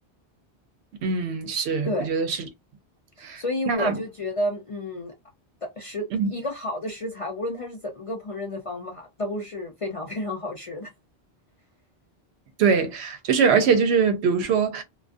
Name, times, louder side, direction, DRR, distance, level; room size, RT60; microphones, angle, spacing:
voice 1, 1.0-2.4 3.2-4.0 6.2-6.3 12.6-14.8, right 5 dB, 85° right, 0.9 m, -22 dB
voice 2, 3.2-5.1 5.8-6.0 6.3-10.9, left 1 dB, 55° left, 0.4 m, -31 dB
2.3 x 2.3 x 2.4 m
omnidirectional pair, 1.1 m